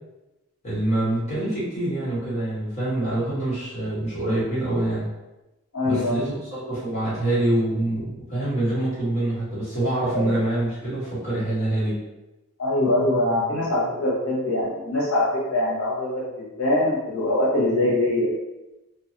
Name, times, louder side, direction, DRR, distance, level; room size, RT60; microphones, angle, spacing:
voice 1, 0.6-5.1 5.8-12.0, right 1 dB, 30° left, -10 dB, 1.3 m, -25 dB
voice 2, 5.7-6.3 10.1-10.3 10.8-11.0 12.6-18.3, left 1 dB, 80° left, -7 dB, 0.8 m, -23 dB
2.9 x 2.3 x 2.8 m, 1.0 s
head